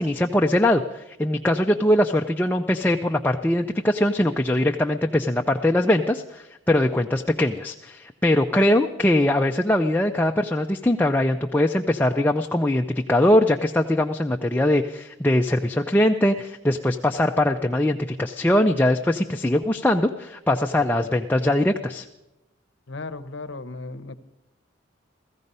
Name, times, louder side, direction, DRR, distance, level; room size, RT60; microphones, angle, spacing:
voice 1, 0.0-22.1, left 1 dB, 10° left, 3 dB, 0.4 m, -21 dB
voice 2, 22.9-24.1, left 3 dB, 60° left, 11 dB, 0.8 m, -35 dB
16.5 x 14.5 x 5.4 m, 0.94 s
head